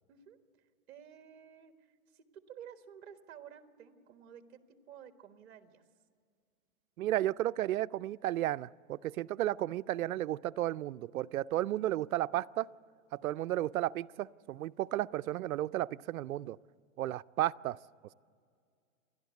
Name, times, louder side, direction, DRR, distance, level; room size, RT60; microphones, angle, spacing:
voice 1, 0.9-5.8, right 9 dB, 50° right, 8 dB, 1.5 m, -53 dB
voice 2, 7.0-12.7 13.1-16.6 17.0-17.8, right 14 dB, 80° right, 15 dB, 0.6 m, -33 dB
29.0 x 11.5 x 8.2 m, 2.2 s
hypercardioid pair, 165°, 41 cm